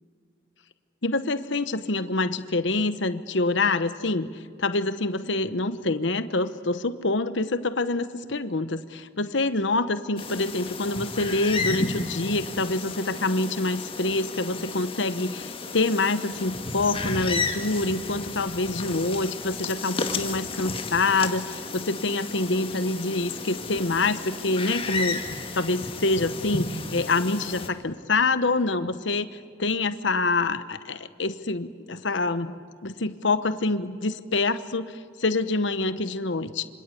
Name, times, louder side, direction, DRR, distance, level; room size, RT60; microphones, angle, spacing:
voice 1, 1.0-25.2 25.5-36.6, left 3 dB, 70° left, 12 dB, 1.0 m, -26 dB
sound 1, 10.2-27.7, left 3 dB, 30° left, 2.0 m, -33 dB
26.5 x 26.0 x 8.4 m, 2.1 s
head